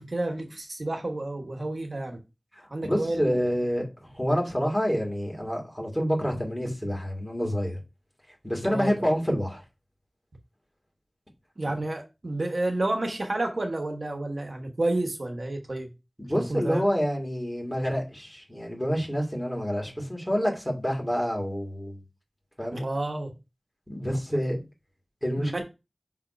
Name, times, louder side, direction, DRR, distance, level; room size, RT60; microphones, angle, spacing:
voice 1, 0.0-2.2 2.7-3.4 8.6-8.9 11.6-15.9 16.3-16.8 22.7-23.4 24.3-24.4 25.4-25.6, right 2 dB, 80° right, 1.3 m, -30 dB
voice 2, 2.5-7.8 8.4-9.6 11.6-11.7 16.2-22.0 22.6-22.9 23.9-24.6 25.2-25.6, equal, 10° left, 2.9 m, -28 dB
5.7 x 3.6 x 5.1 m
wide cardioid pair, 45°, 0 cm